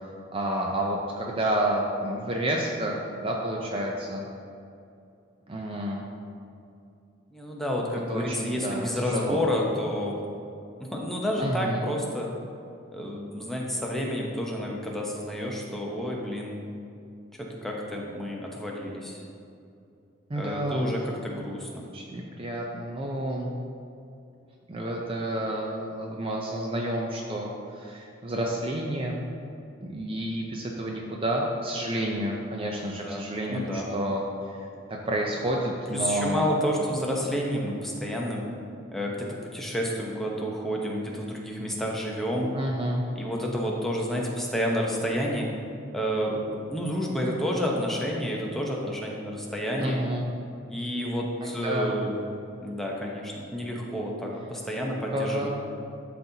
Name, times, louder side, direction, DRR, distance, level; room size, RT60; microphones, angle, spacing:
voice 1, 0.3-4.3 5.5-6.0 8.1-9.5 11.4-11.9 20.3-20.9 21.9-23.5 24.7-29.2 29.8-36.5 42.5-43.0 49.8-50.3 51.4-51.9 55.1-55.5, right 1 dB, 25° right, -1 dB, 0.4 m, -30 dB
voice 2, 7.3-10.2 10.8-12.3 12.9-16.6 17.3-19.2 20.4-21.8 33.0-33.9 35.9-38.4 38.9-42.5 43.2-45.5 45.9-50.0 50.7-52.1 52.6-55.5, equal, ahead, -3 dB, 0.7 m, -30 dB
11.5 x 4.2 x 2.7 m, 2.6 s
head